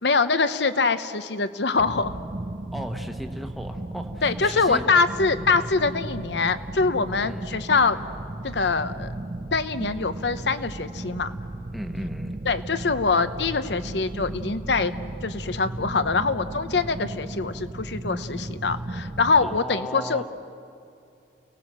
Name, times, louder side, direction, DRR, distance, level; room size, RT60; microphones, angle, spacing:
voice 1, 0.0-2.1 4.2-8.0 8.4-9.1 9.5-11.3 12.4-14.9 15.2-20.2, left 4 dB, 75° left, 12 dB, 1.0 m, -24 dB
sound 1, 1.8-19.6, right 2 dB, 30° right, 0.5 m, -35 dB
voice 2, 2.7-4.8 7.2-7.5 11.7-12.4 19.4-20.2, equal, ahead, 4 dB, 1.2 m, -36 dB
30.0 x 19.0 x 7.6 m, 2.6 s
head